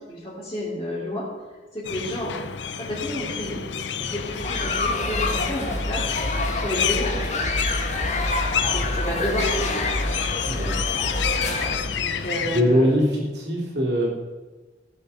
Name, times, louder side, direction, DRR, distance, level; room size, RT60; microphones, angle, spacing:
voice 1, 0.1-1.2 1.7-2.4 2.8-3.6 4.0-6.0 6.5-7.5 8.7-10.0 11.6-13.0, left 1 dB, 20° left, -9 dB, 2.8 m, -30 dB
sound 1, 1.8-12.6, left 7 dB, 75° left, 0.7 m, -29 dB
sound 2, 4.2-11.8, left 2 dB, 40° left, 1.6 m, -27 dB
voice 2, 10.5-11.0 12.4-14.1, equal, 65° right, -1 dB, 3.1 m, -23 dB
15.5 x 7.3 x 5.6 m, 1.3 s
head